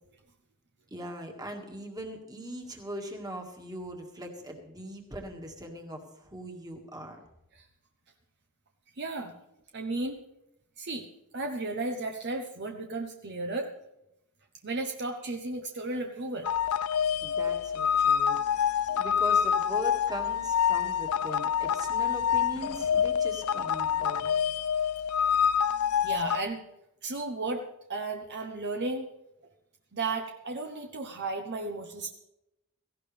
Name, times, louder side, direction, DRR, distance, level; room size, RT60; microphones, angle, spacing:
voice 1, 0.9-7.2 17.2-24.4, equal, 20° right, 2 dB, 2.0 m, -40 dB
voice 2, 9.0-9.3 9.7-10.2 10.8-11.1 11.3-13.7 14.6-16.5 26.0-26.6 27.0-27.6 27.9-29.1 29.9-32.1, right 2 dB, 50° right, 4 dB, 1.0 m, -34 dB
sound 1, 16.4-26.4, left 8 dB, 75° left, 0.5 m, -27 dB
17.0 x 15.5 x 3.4 m, 0.87 s
head